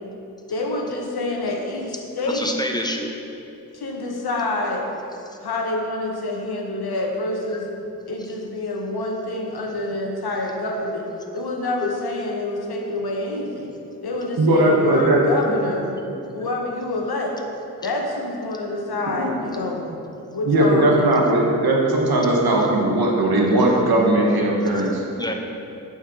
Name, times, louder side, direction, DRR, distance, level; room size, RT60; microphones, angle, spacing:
voice 1, 0.5-2.5 3.7-4.9 5.4-7.7 8.1-11.0 11.3-13.7 14.0-15.9 16.3-17.3 17.8-19.8 20.3-21.2, left 2 dB, 80° left, 0 dB, 1.0 m, -27 dB
voice 2, 2.3-3.2 5.3-5.4 7.5-7.6 10.8-10.9 11.8-11.9 24.3-24.4 25.2-25.3, left 1 dB, 10° left, 2 dB, 0.6 m, -28 dB
voice 3, 14.4-15.5 19.2-19.3 20.4-25.0, right 1 dB, 75° right, -2 dB, 1.1 m, -18 dB
8.6 x 4.5 x 3.6 m, 2.8 s
wide cardioid pair, 75°, 37 cm